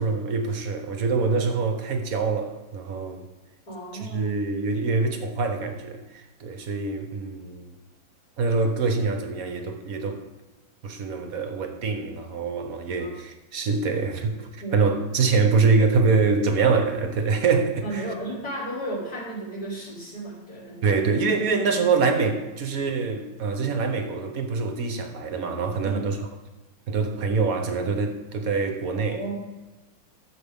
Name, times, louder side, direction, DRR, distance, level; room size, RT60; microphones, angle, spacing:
voice 1, 0.0-3.2 3.9-7.7 8.4-10.2 10.8-18.1 20.8-26.2 26.9-29.2, right 4 dB, 55° right, 1.3 m, -25 dB
voice 2, 3.7-4.4 13.0-13.2 14.6-14.8 17.8-21.2 25.8-26.1 28.9-29.4, right 2 dB, 50° left, 3.8 m, -34 dB
14.0 x 7.3 x 3.6 m
omnidirectional pair, 2.1 m